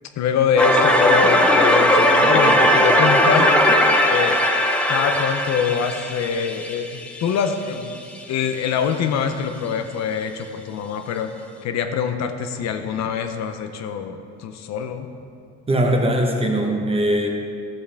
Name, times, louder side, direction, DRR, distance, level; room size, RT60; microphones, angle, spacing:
voice 1, 0.2-3.5 4.1-4.4 4.9-8.0 8.3-11.3 11.6-15.1, left 7 dB, 65° left, 7 dB, 0.7 m, -24 dB
sound 1, 0.6-7.4, equal, 5° left, 0.5 m, -18 dB
voice 2, 15.7-17.3, right 1 dB, 20° right, 1 dB, 1.0 m, -20 dB
12.0 x 7.5 x 3.4 m, 2.4 s
cardioid pair, 135°, 30 cm